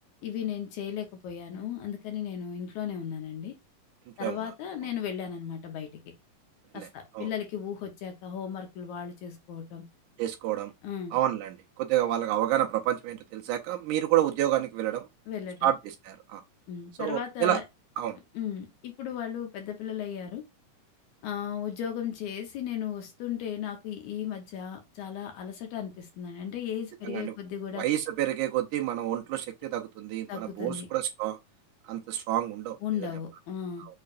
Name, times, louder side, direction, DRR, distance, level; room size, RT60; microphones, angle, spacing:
voice 1, 0.2-3.5 4.2-5.9 6.7-9.9 10.8-11.2 15.3-15.7 16.7-17.6 18.3-20.4 21.2-27.9 30.3-30.9 32.8-33.9, left 9 dB, 70° left, 2.1 m, -35 dB
voice 2, 10.2-10.7 11.1-15.1 15.6-16.4 17.0-17.6 18.0-18.2 27.0-27.3 27.8-31.4 31.9-32.8, right 12 dB, 75° right, 2.0 m, -29 dB
6.5 x 3.1 x 2.5 m
omnidirectional pair, 3.8 m